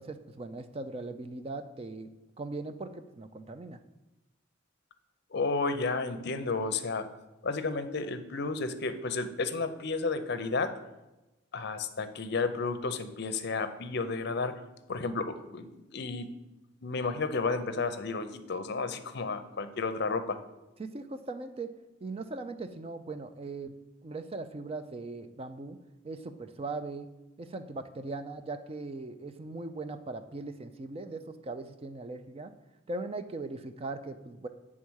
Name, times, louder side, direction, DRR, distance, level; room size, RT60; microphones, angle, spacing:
voice 1, 0.0-2.1 2.4-3.8 20.8-21.7 22.0-23.7 24.0-25.8 26.0-27.1 27.4-32.5 32.9-34.5, right 3 dB, 30° right, 9 dB, 0.4 m, -39 dB
voice 2, 5.3-7.0 7.4-10.7 11.5-14.5 14.9-16.3 16.8-20.4, left 4 dB, 55° left, 9 dB, 0.6 m, -32 dB
8.4 x 3.7 x 6.2 m, 1.0 s
head